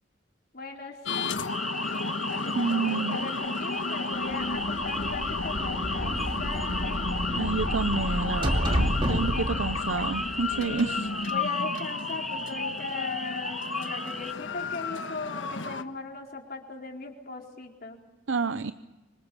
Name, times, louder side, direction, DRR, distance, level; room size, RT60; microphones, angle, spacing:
voice 1, 0.5-1.6 2.4-7.1 9.5-9.7 10.5-11.0 11.3-18.0, left 3 dB, 55° left, 1 dB, 4.3 m, -39 dB
sound 1, 1.1-15.8, left 4 dB, 85° left, 1.4 m, -32 dB
sound 2, 1.5-14.3, equal, ahead, 0.8 m, -37 dB
voice 2, 2.5-3.2 7.4-11.1 18.3-18.7, right 4 dB, 85° right, 12 dB, 0.7 m, -29 dB
sound 3, 4.3-11.1, equal, 25° right, 2.7 m, -31 dB
26.5 x 25.0 x 7.0 m, 1.1 s
head